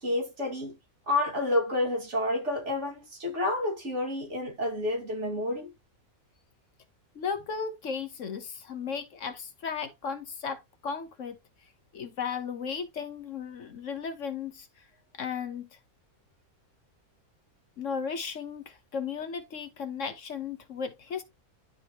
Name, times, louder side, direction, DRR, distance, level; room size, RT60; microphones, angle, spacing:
voice 1, 0.0-0.8 1.1-5.7, left 2 dB, 55° right, 2.4 m, -29 dB
voice 2, 7.1-11.4 11.9-14.9 15.1-15.8 17.8-21.2, left 6 dB, 60° left, 1.2 m, -35 dB
11.0 x 3.7 x 2.9 m
omnidirectional pair, 1.5 m